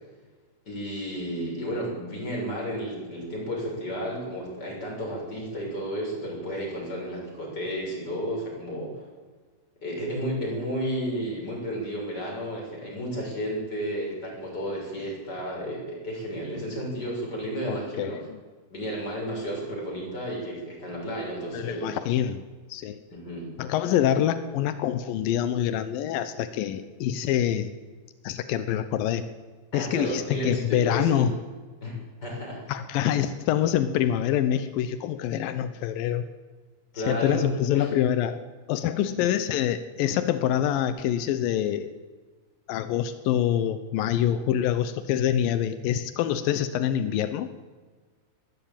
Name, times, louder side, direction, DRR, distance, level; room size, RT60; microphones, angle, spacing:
voice 1, 0.6-9.0 9.8-18.2 18.7-21.9 23.1-23.5 29.7-31.2 31.8-32.6 36.9-37.4 37.7-37.9, equal, 20° left, -1 dB, 7.0 m, -32 dB
voice 2, 17.7-18.2 21.5-22.4 22.7-23.0 23.6-27.7 28.2-29.2 29.7-31.3 32.7-36.2 37.1-38.4 38.7-41.9 42.7-47.5, left 10 dB, 85° left, 11 dB, 2.0 m, -25 dB
21.0 x 15.0 x 9.0 m, 1.4 s
omnidirectional pair, 5.3 m